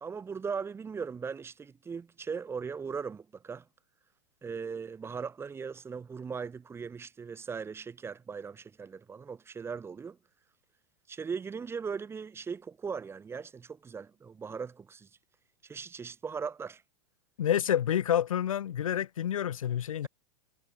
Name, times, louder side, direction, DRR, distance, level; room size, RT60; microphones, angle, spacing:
voice 1, 0.0-3.6 4.4-10.2 11.1-15.1 15.6-16.8, right 5 dB, 15° right, 2.2 m, -39 dB
voice 2, 17.4-20.1, left 10 dB, 90° left, 1.7 m, -28 dB
hypercardioid pair, 135°, 17 cm